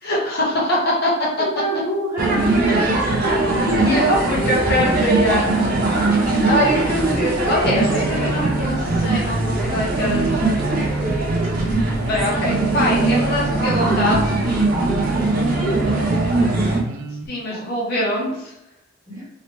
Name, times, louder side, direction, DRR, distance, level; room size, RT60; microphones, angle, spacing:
voice 1, 0.0-1.3 3.7-5.5 6.4-10.4 12.0-14.3 17.2-18.5, left 1 dB, 50° left, -4 dB, 0.9 m, -23 dB
voice 2, 1.4-3.5 6.4-6.6 16.5-16.7 17.5-17.6 19.1-19.2, right 2 dB, 15° right, -8 dB, 1.3 m, -28 dB
sound 1, 2.2-16.8, right 2 dB, 45° right, 0.8 m, -21 dB
sound 2, 7.7-17.3, right 3 dB, 80° right, 0.4 m, -27 dB
3.2 x 2.8 x 2.9 m, 0.87 s
head